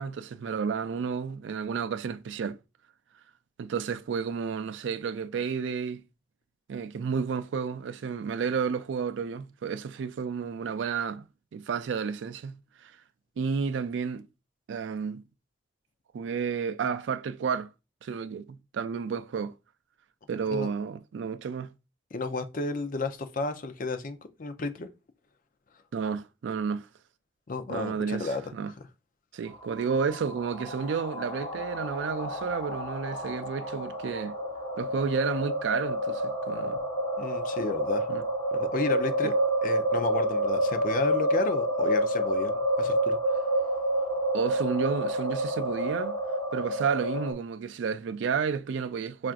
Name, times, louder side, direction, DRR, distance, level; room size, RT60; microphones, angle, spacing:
voice 1, 0.0-2.6 3.6-6.0 6.7-11.3 11.5-12.6 12.8-12.9 13.4-14.2 14.7-15.2 16.1-17.7 18.0-19.5 20.3-21.7 25.9-26.9 27.7-28.7 29.3-34.4 34.8-36.8 38.1-38.2 39.2-39.3 44.3-46.2 46.5-49.3, right 6 dB, 75° right, 0.3 m, -31 dB
voice 2, 22.1-24.9 27.5-28.5 37.2-38.1 38.5-39.3 39.6-43.4, left 3 dB, 45° left, 0.5 m, -32 dB
sound 1, 29.5-47.3, right 1 dB, 20° left, 0.9 m, -29 dB
5.7 x 2.5 x 2.4 m
head